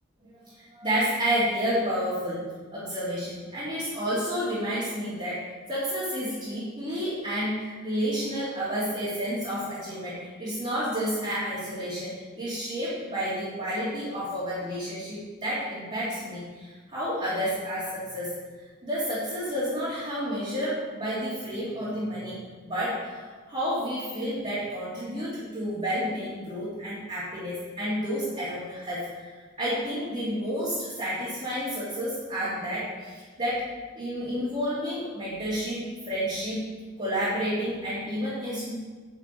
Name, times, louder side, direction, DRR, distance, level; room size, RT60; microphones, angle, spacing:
voice 1, 0.2-2.4 2.7-18.3 18.8-36.6 37.0-38.7, equal, 30° right, -11 dB, 2.9 m, -30 dB
9.8 x 6.6 x 4.9 m, 1.4 s
head